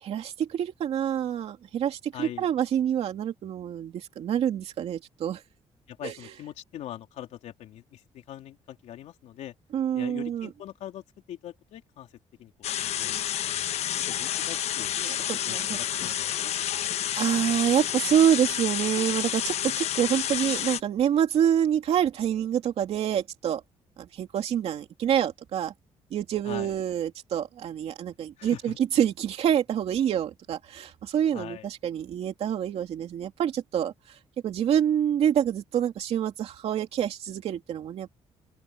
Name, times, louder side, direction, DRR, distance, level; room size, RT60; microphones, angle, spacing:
voice 1, 0.0-5.4 6.0-6.1 9.7-10.5 15.0-15.8 17.1-23.6 24.0-25.7 26.1-34.2 34.4-38.1, right 9 dB, 60° right, 2.7 m, -27 dB
voice 2, 2.1-2.5 5.9-9.5 9.9-12.1 12.4-12.5 12.8-14.9 15.5-17.1 26.4-26.7 28.4-28.8 31.3-31.7, left 12 dB, 80° left, 3.4 m, -42 dB
sound 1, 12.6-20.8, left 11 dB, 65° left, 1.0 m, -29 dB
open air
cardioid pair, 160°, 12 cm